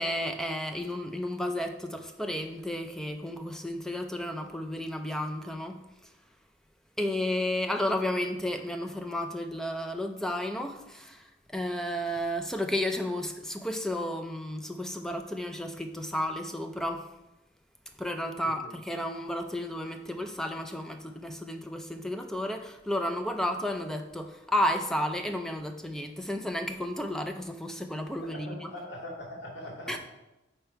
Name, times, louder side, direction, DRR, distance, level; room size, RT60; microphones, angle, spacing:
voice 1, 0.0-6.1 7.0-17.0 18.0-28.7 29.9-30.0, left 1 dB, 5° left, 5 dB, 0.3 m, -32 dB
voice 2, 28.2-30.0, left 1 dB, 70° left, -4 dB, 2.3 m, -41 dB
5.2 x 4.4 x 4.5 m, 0.97 s
head